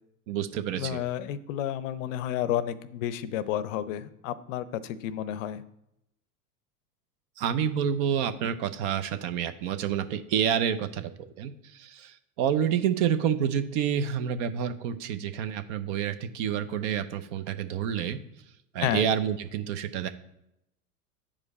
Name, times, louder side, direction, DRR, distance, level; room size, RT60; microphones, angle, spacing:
voice 1, 0.3-1.0 7.4-18.2 18.7-20.1, right 8 dB, 50° right, 10 dB, 0.7 m, -28 dB
voice 2, 0.8-5.6 18.8-19.1, left 11 dB, 55° left, 16 dB, 0.6 m, -31 dB
8.7 x 4.9 x 4.1 m, 0.84 s
hypercardioid pair, 100°, 47 cm